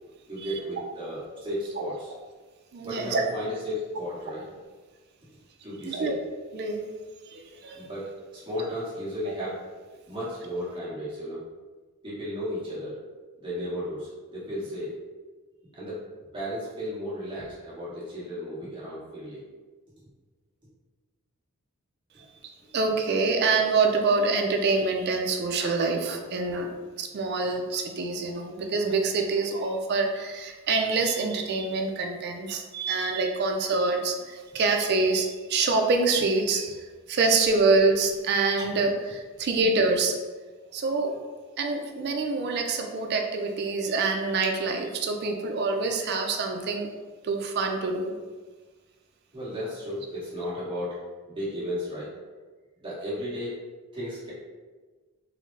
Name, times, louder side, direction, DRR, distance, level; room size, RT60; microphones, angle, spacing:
voice 1, 0.3-2.1 2.8-4.4 5.6-6.2 7.7-9.6 10.1-11.5 12.0-13.0 13.4-14.9 15.7-16.0 16.3-19.4 49.3-51.0 51.3-52.1 52.8-53.6 53.9-54.3, equal, 20° right, -9 dB, 1.1 m, -34 dB
voice 2, 2.7-3.3 5.8-6.1 6.5-6.8 7.3-7.9 22.7-26.7 27.0-40.1 40.7-41.2 41.6-46.9 47.2-48.2, right 3 dB, 45° right, 3 dB, 0.4 m, -26 dB
3.7 x 2.1 x 3.1 m, 1.3 s
head